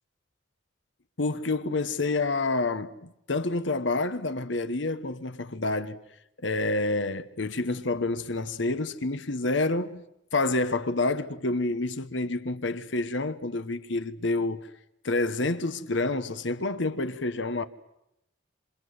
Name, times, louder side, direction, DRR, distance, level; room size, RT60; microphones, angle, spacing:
voice 1, 1.2-6.0 6.4-10.0 10.3-14.7 15.0-17.6, left 2 dB, 70° left, 1.2 m, -28 dB
27.5 x 26.5 x 8.1 m
head